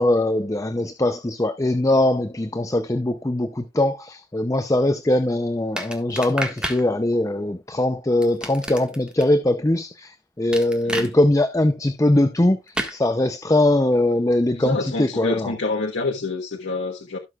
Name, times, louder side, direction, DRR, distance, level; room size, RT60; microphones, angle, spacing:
voice 1, 0.0-10.1 10.4-15.5, left 1 dB, 20° left, 0.6 m, -21 dB
sound 1, 5.8-6.8 8.2-9.2 10.5-11.1 12.8-13.0, right 1 dB, 5° right, 1.6 m, -29 dB
voice 2, 10.8-11.1 14.6-17.2, left 3 dB, 85° left, 1.4 m, -27 dB
17.0 x 6.4 x 2.4 m
head